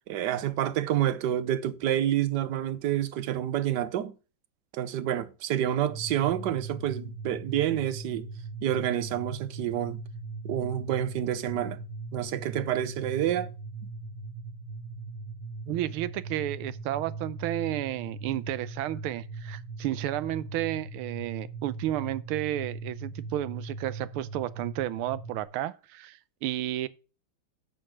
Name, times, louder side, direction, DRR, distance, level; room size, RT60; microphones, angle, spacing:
voice 1, 0.1-4.1 4.7-8.3 8.6-10.0 10.4-11.8 12.1-13.5, right 11 dB, 70° right, 1.1 m, -28 dB
sound 1, 5.9-25.4, right 3 dB, 35° right, 1.3 m, -40 dB
voice 2, 15.7-26.9, right 14 dB, 85° right, 1.5 m, -32 dB
7.6 x 6.5 x 6.1 m
omnidirectional pair, 2.3 m